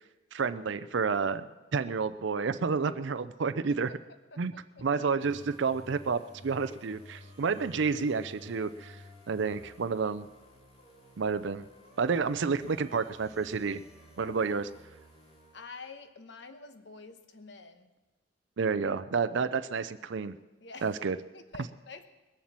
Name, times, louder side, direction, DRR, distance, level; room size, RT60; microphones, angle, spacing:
voice 1, 0.3-1.5 1.7-3.9 4.4-4.5 4.8-9.0 9.3-10.3 11.2-11.6 12.0-13.8 14.2-14.7 18.6-20.4 20.8-21.2, right 5 dB, 65° right, 12 dB, 0.5 m, -30 dB
voice 2, 4.3-4.9 14.2-14.6 15.5-17.9 20.6-21.0 21.3-22.0, left 4 dB, 60° left, 8 dB, 1.1 m, -48 dB
sound 1, 5.2-16.0, left 1 dB, 30° left, 2.5 m, -54 dB
20.5 x 7.2 x 7.4 m, 1.1 s
head